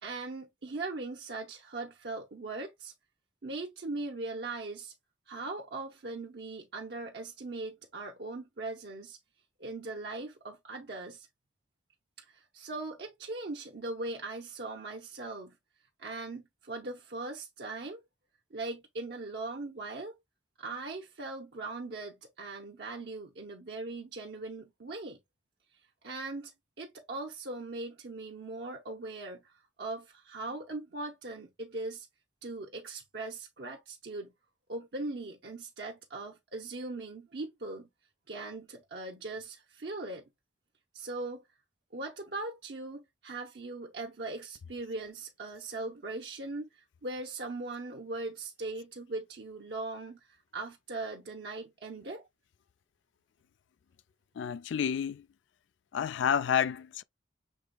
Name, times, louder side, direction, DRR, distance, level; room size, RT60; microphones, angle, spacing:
voice 1, 0.0-2.9 3.4-4.9 5.3-9.2 9.6-11.3 12.3-15.6 16.0-18.0 18.5-20.2 20.6-25.2 26.0-26.5 26.8-29.5 29.8-32.1 32.4-34.3 34.7-37.9 38.3-40.2 40.9-41.4 41.9-52.2, right 2 dB, 65° right, 0.8 m, -40 dB
voice 2, 54.4-55.2 55.9-57.0, left 8 dB, 75° left, 0.3 m, -29 dB
6.6 x 3.4 x 2.3 m
head